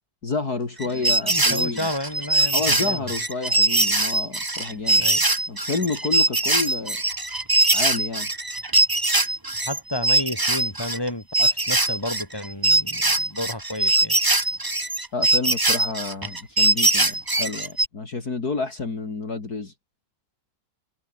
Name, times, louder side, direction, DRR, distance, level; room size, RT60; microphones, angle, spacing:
voice 1, 0.2-1.9 2.5-5.0 5.5-7.0 7.7-8.3 15.1-19.7, left 4 dB, 55° left, 3.7 m, -29 dB
sound 1, 0.8-11.1 11.3-17.9, right 2 dB, 15° right, 1.3 m, -22 dB
voice 2, 0.9-3.0 4.9-5.2 9.7-14.2, left 1 dB, 10° left, 6.7 m, -32 dB
omnidirectional pair, 2.0 m